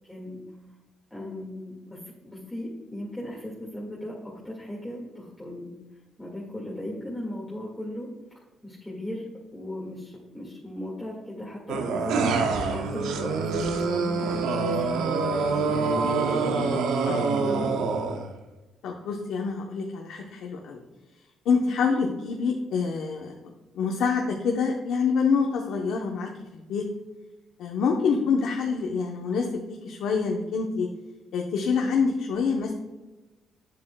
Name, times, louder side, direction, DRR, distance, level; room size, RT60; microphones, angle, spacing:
voice 1, 0.1-0.4 1.1-5.7 6.2-9.3 9.5-16.9 17.4-18.1, left 1 dB, 10° left, -5 dB, 1.8 m, -38 dB
sound 1, 11.7-18.3, right 4 dB, 85° right, 0.7 m, -26 dB
voice 2, 18.8-20.8 21.4-26.8 27.6-30.9 31.3-32.7, left 5 dB, 80° left, 1 dB, 0.8 m, -26 dB
8.6 x 7.5 x 2.2 m, 1.1 s
cardioid pair, 90°, 0 cm